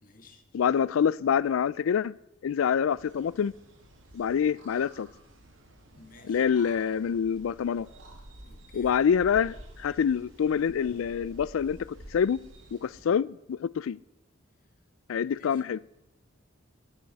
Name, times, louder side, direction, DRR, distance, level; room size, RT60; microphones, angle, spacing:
voice 1, 0.0-0.4 5.9-6.8 8.4-9.0 13.0-13.2 15.3-15.6, left 2 dB, 45° left, 1.5 m, -55 dB
voice 2, 0.5-2.1 2.4-3.5 4.1-5.1 6.3-7.9 8.7-11.8 12.1-12.4 12.7-14.0 15.1-15.8, left 7 dB, 90° left, 0.4 m, -26 dB
sound 1, 2.9-13.0, right 1 dB, 75° right, 2.1 m, -50 dB
12.0 x 11.5 x 4.1 m
head